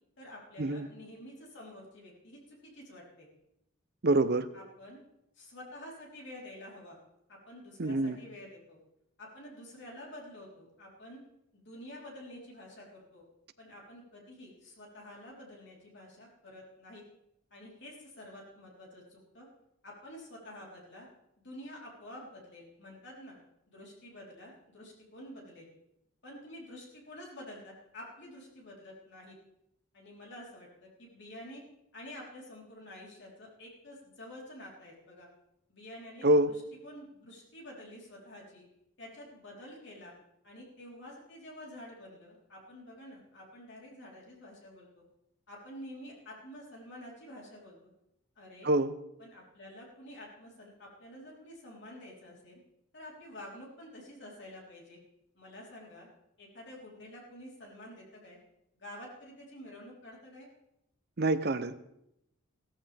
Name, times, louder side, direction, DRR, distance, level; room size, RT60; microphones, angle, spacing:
voice 1, 0.2-3.3 4.5-5.0 5.3-7.0 7.3-8.8 9.2-11.2 11.5-13.2 13.6-17.0 17.5-19.5 19.8-21.1 21.4-23.4 23.7-25.7 26.2-29.4 29.9-31.6 31.9-35.3 35.7-38.7 39.0-40.1 40.4-45.0 45.5-47.8 48.4-48.7 49.2-52.6 52.9-55.0 55.3-56.1 56.4-58.4 58.8-60.5, left 1 dB, 55° left, -3 dB, 3.9 m, -49 dB
voice 2, 4.0-4.5 7.8-8.2 36.2-36.5 48.6-48.9 61.2-61.7, right 2 dB, 50° right, 12 dB, 0.7 m, -26 dB
15.0 x 14.0 x 3.5 m, 0.82 s
head